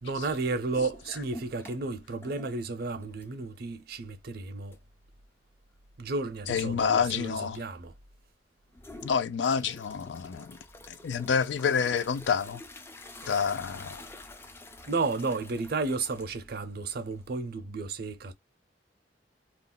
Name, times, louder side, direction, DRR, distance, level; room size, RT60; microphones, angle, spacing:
voice 1, 0.0-4.8 6.0-7.9 13.2-13.4 14.9-18.3, right 3 dB, 60° right, 0.5 m, -33 dB
sound 1, 0.7-1.9 2.2-3.6 4.0-4.1 4.7-4.8 8.7-17.5, left 2 dB, 15° left, 0.3 m, -48 dB
voice 2, 6.5-7.6 9.0-10.6 10.9-12.6 13.3-14.0, left 6 dB, 85° left, 0.4 m, -28 dB
2.4 x 2.0 x 3.7 m
head